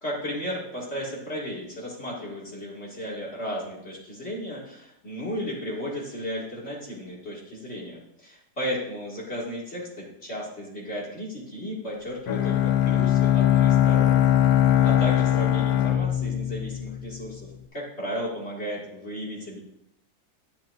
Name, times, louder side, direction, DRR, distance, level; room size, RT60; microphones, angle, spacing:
voice 1, 0.0-14.2 14.8-17.4 17.7-19.6, equal, 40° left, -5 dB, 2.4 m, -34 dB
Bowed string instrument, 12.3-17.3, left 11 dB, 70° left, 1.1 m, -21 dB
10.5 x 8.6 x 2.6 m, 0.77 s
omnidirectional pair, 1.8 m